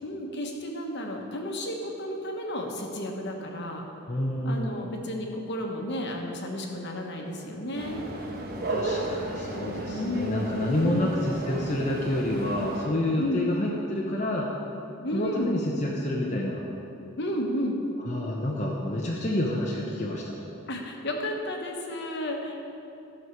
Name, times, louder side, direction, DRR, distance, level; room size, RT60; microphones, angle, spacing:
voice 1, 0.0-3.8 4.4-8.0 9.9-10.5 10.8-11.1 13.2-13.4 15.0-15.6 17.2-17.8 20.7-22.6, equal, 50° left, 1 dB, 1.2 m, -32 dB
voice 2, 4.1-4.9 8.6-14.5 15.1-16.6 18.0-20.4, left 1 dB, 35° left, -3 dB, 0.8 m, -28 dB
sound 1, 7.8-12.9, right 2 dB, 45° right, 1.0 m, -34 dB
14.0 x 6.5 x 4.7 m, 2.8 s
head